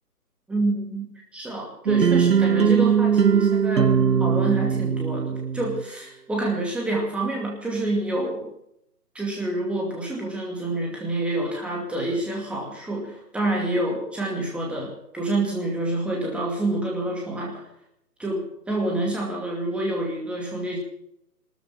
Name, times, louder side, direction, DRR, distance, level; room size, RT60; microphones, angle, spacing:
voice 1, 0.5-8.5 9.1-17.6 18.2-20.8, right 2 dB, ahead, -2 dB, 2.4 m, -28 dB
sound 1, 1.8-5.8, right 7 dB, 80° right, 0.9 m, -20 dB
18.5 x 13.5 x 5.8 m, 0.75 s
figure-of-eight pair, 150°, 49 cm